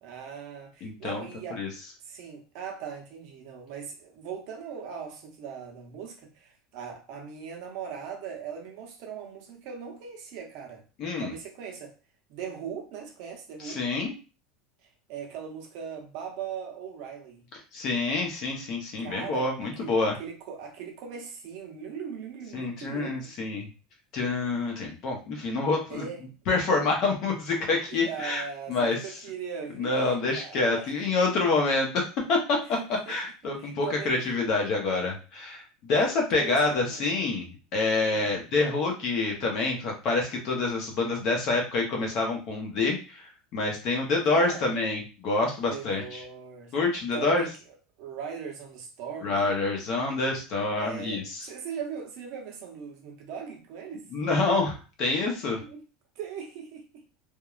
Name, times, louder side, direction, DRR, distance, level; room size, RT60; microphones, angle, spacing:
voice 1, 0.0-1.7 2.0-10.8 11.2-11.9 12.3-13.8 15.1-17.4 19.0-23.2 25.9-26.3 27.9-30.9 31.3-31.4 32.7-33.2 33.6-34.2 35.9-37.1 38.1-38.4 44.2-44.7 45.6-46.7 47.1-49.6 50.8-54.1 55.6-55.8 56.2-57.0, right 7 dB, 50° right, 0.6 m, -40 dB
voice 2, 0.8-1.2 1.6-1.7 11.0-11.3 13.6-14.1 17.7-20.2 22.5-23.7 24.1-26.0 26.5-28.4 28.7-29.0 29.8-32.6 33.1-43.2 43.5-46.2 46.7-47.4 49.2-51.4 54.1-55.6, left 3 dB, 35° left, 0.6 m, -27 dB
2.9 x 2.2 x 2.3 m
supercardioid pair, 180°, 0 cm